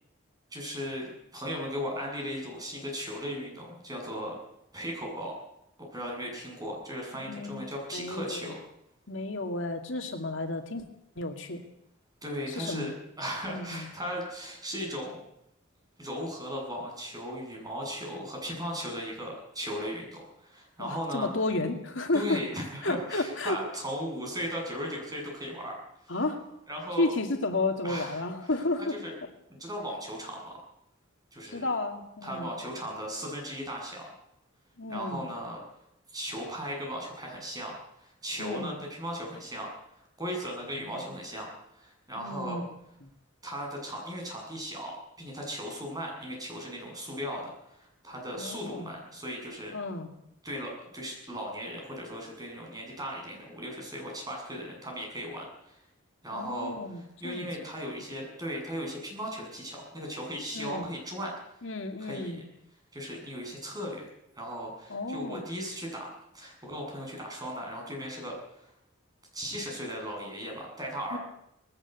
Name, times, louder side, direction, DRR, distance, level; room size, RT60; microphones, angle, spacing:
voice 1, 0.5-4.4 4.7-5.3 5.8-8.6 12.2-15.2 16.0-21.3 22.1-25.7 26.7-27.2 27.8-28.1 28.9-29.1 29.6-30.6 31.3-31.7 32.2-34.1 34.9-35.6 36.1-39.7 40.2-41.5 41.8-42.6 43.4-49.8 50.4-55.8 56.2-61.3 62.0-62.4 62.9-64.1 64.4-68.7 69.3-71.2, equal, 20° right, 0 dB, 7.9 m, -37 dB
voice 2, 7.3-7.6 7.9-8.5 9.1-10.8 11.2-11.6 12.5-12.9 13.5-13.9 20.8-22.4 22.8-23.6 26.1-26.4 27.0-29.0 31.5-32.5 34.8-35.3 38.4-38.7 40.9-41.1 42.2-42.6 48.4-48.9 49.7-50.1 56.3-57.5 60.5-60.9 61.6-62.4 64.9-65.4 71.1-71.2, left 2 dB, 70° left, 5 dB, 2.4 m, -32 dB
20.0 x 17.0 x 8.2 m, 0.79 s
head